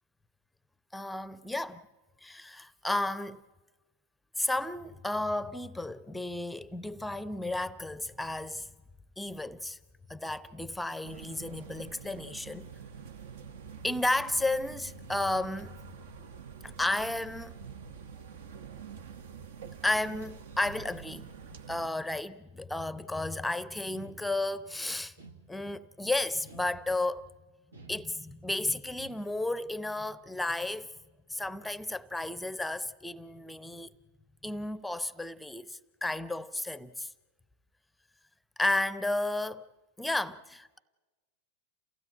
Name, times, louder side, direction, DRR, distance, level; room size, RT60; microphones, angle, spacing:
voice 1, 0.9-1.8 2.2-3.4 4.4-8.7 9.2-9.8 10.1-12.7 13.8-15.8 16.6-17.6 19.8-21.3 21.7-25.1 25.5-27.3 27.9-30.9 31.3-33.9 34.4-37.1 38.6-39.6 40.0-40.8, left 2 dB, 5° left, 0.7 m, -33 dB
sound 1, 11.0-21.9, right 6 dB, 60° right, 0.9 m, -47 dB
sound 2, 23.9-24.7 25.2-25.9 26.4-27.2 27.7-28.5 29.0-29.6, right 4 dB, 75° right, 1.5 m, -53 dB
28.5 x 16.0 x 8.7 m
figure-of-eight pair, 90°, 0 cm